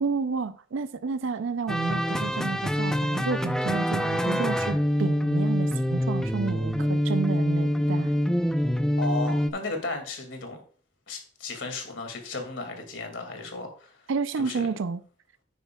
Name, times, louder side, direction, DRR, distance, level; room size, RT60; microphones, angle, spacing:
voice 1, 0.0-8.2 14.1-15.0, right 4 dB, 80° right, 0.5 m, -30 dB
sound 1, 1.7-9.5, equal, 5° left, 0.5 m, -25 dB
voice 2, 9.0-10.6 11.1-13.9 14.4-14.7, left 3 dB, 75° left, 2.3 m, -35 dB
9.9 x 9.3 x 2.3 m
head